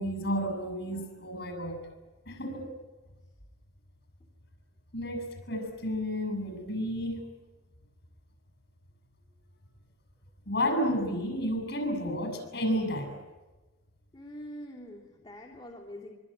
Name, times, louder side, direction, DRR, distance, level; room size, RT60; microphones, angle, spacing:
voice 1, 0.0-1.8 2.3-2.8 4.9-7.3 10.5-13.2, equal, 55° left, 6 dB, 7.1 m, -31 dB
voice 2, 14.1-16.1, equal, 25° left, -3 dB, 3.1 m, -44 dB
25.0 x 25.0 x 9.0 m, 1.2 s
head